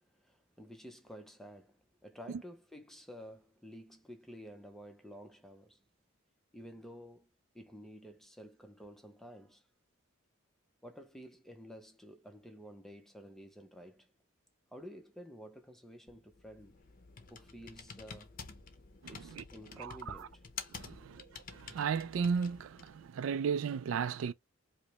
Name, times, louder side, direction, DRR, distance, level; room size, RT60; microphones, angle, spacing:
voice 1, 0.0-5.8 6.5-7.3 7.5-9.6 10.8-14.1 14.7-16.8 17.3-18.4 19.1-20.4 20.9-21.2, equal, ahead, 0.6 m, -51 dB
Computer keyboard, 16.1-23.1, left 5 dB, 40° left, 0.6 m, -50 dB
voice 2, 19.0-19.4 19.8-20.3 20.7-21.2 21.5-24.3, right 6 dB, 70° right, 0.3 m, -35 dB
5.0 x 2.0 x 2.9 m
head